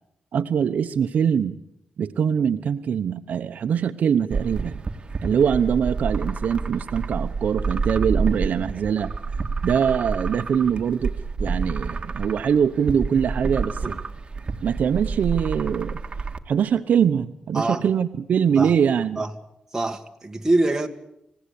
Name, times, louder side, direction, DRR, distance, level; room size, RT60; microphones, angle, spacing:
voice 1, 0.3-1.6 2.0-4.8 5.2-9.1 9.6-11.1 11.4-14.0 14.6-16.0 16.5-19.2, right 7 dB, 75° right, 8 dB, 0.9 m, -23 dB
sound 1, 4.3-16.4, right 4 dB, 35° right, 1.8 m, -29 dB
voice 2, 17.5-17.9 18.6-18.7 19.2-19.3 19.7-20.9, right 2 dB, 15° right, 3 dB, 1.9 m, -24 dB
28.5 x 16.5 x 8.5 m, 0.81 s
cardioid pair, 90°, 3 cm